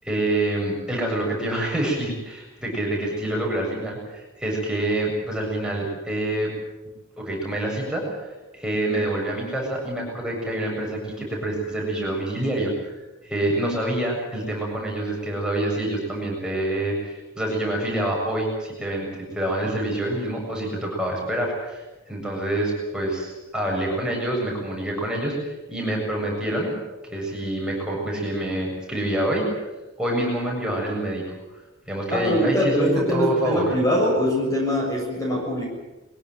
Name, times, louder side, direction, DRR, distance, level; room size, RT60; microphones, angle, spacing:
voice 1, 0.0-6.5 7.2-8.1 8.5-12.9 13.2-19.1 19.3-21.8 22.1-26.7 27.1-29.5 30.0-31.2 31.9-33.7, right 1 dB, 5° right, -2 dB, 7.4 m, -26 dB
voice 2, 32.1-35.7, left 1 dB, 15° left, -1 dB, 7.0 m, -23 dB
23.0 x 17.0 x 9.5 m, 1.0 s
head